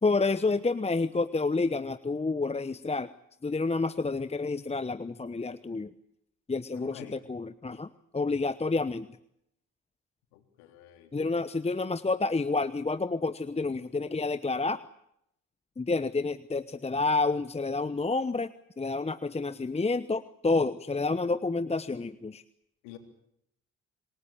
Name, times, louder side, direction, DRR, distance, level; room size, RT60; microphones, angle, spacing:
voice 1, 0.0-3.1 3.4-5.9 6.5-9.1 11.1-14.8 15.8-18.5 18.8-22.4, left 3 dB, 15° left, 14 dB, 1.0 m, -29 dB
voice 2, 6.7-7.2 10.3-11.1 22.8-23.0, left 11 dB, 75° left, 6 dB, 3.8 m, -48 dB
27.0 x 18.5 x 8.8 m, 0.76 s
hypercardioid pair, 50°, 39 cm